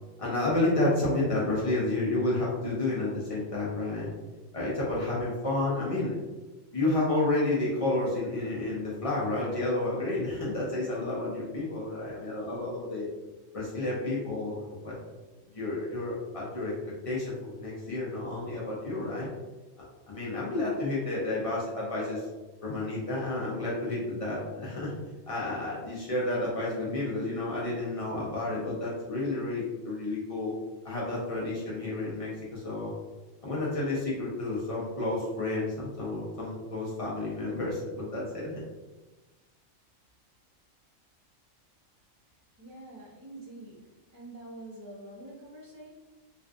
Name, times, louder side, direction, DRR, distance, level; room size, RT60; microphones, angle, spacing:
voice 1, 0.2-4.1 4.5-6.1 6.7-13.1 13.5-15.0 15.5-16.7 17.0-19.3 20.1-22.3 22.6-24.9 25.3-30.5 30.8-32.9 33.4-38.6, left 2 dB, 65° left, -6 dB, 0.3 m, -30 dB
voice 2, 42.6-43.8 44.1-45.9, right 1 dB, 20° right, -8 dB, 0.5 m, -46 dB
2.5 x 2.4 x 2.3 m, 1.2 s
omnidirectional pair, 1.4 m